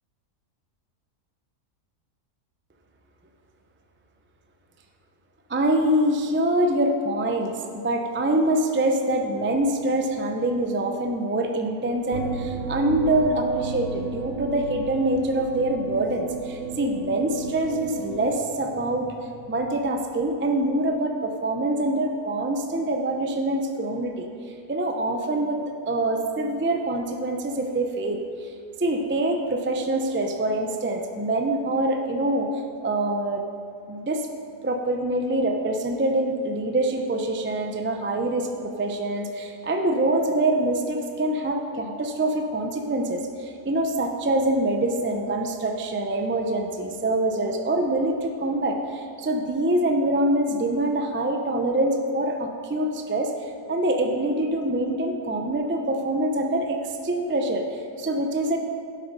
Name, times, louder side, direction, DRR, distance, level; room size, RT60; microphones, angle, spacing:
voice 1, 5.5-25.6 25.9-28.5 28.8-32.5 32.8-33.4 33.9-34.3 34.6-58.6, right 1 dB, 20° right, 4 dB, 0.3 m, -25 dB
sound 1, 12.1-18.4, right 4 dB, 60° right, 1.0 m, -34 dB
12.0 x 8.0 x 5.2 m, 2.4 s
omnidirectional pair, 1.6 m